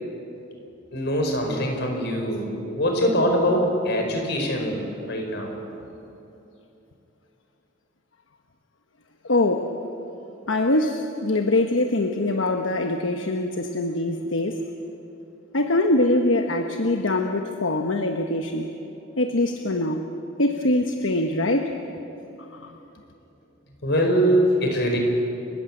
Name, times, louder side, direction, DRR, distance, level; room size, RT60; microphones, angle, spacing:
voice 1, 0.9-4.8 5.1-5.5 23.8-25.0, equal, 60° left, 2 dB, 4.9 m, -23 dB
voice 2, 9.3-9.7 10.5-14.6 15.5-18.7 19.2-20.0 20.4-21.7 22.5-22.7, left 2 dB, 80° left, 5 dB, 1.1 m, -23 dB
29.5 x 14.5 x 8.9 m, 3.0 s
head